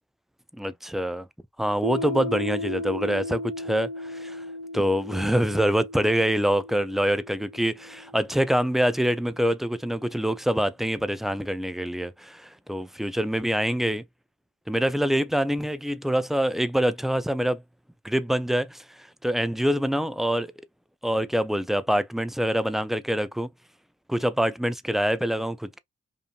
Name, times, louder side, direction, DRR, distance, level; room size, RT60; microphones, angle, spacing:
voice 1, 0.6-1.3 1.6-4.5 4.7-14.0 14.7-17.6 18.0-20.5 21.0-23.5 24.1-25.8, equal, ahead, 0.3 m, -25 dB
Piano, 1.8-9.1, left 1 dB, 65° right, 1.3 m, -36 dB
2.5 x 2.5 x 2.3 m
supercardioid pair, 40°, 29 cm